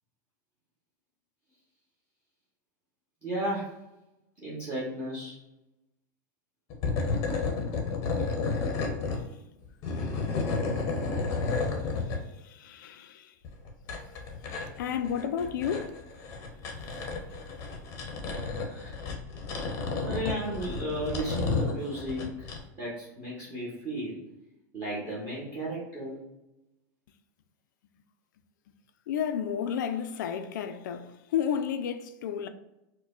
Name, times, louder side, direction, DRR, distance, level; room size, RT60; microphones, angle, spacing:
voice 1, 3.2-3.8 4.4-5.4 18.7-19.0 20.0-22.5 22.8-24.2 24.7-26.2, right 1 dB, 15° right, 1.0 m, -34 dB
sound 1, 6.7-9.2 9.6-12.2 13.4-22.6, left 4 dB, 30° left, 0.7 m, -32 dB
voice 2, 9.1-9.4 10.4-10.5 11.9-13.4 14.0-14.1 14.4-16.0 29.1-32.5, left 8 dB, 75° left, 0.4 m, -33 dB
4.7 x 2.2 x 2.4 m
supercardioid pair, 170°, 10 cm